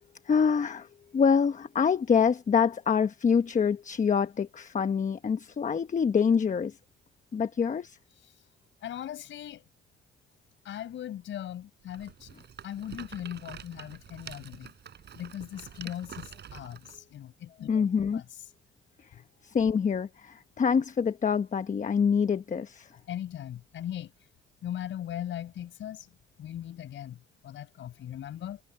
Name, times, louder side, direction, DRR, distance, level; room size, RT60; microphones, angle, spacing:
voice 1, 0.2-0.9 1.1-6.8 7.3-8.0 17.7-18.2 19.4-22.9, left 6 dB, 40° left, 1.1 m, -25 dB
voice 2, 8.8-9.6 10.7-12.3 12.6-14.7 15.1-17.8 18.1-18.3 23.1-24.1 24.6-26.1 26.4-28.6, left 11 dB, 70° left, 5.2 m, -39 dB
Rattle, 11.9-17.0, right 8 dB, 60° right, 5.4 m, -47 dB
cardioid pair, 90°, 20 cm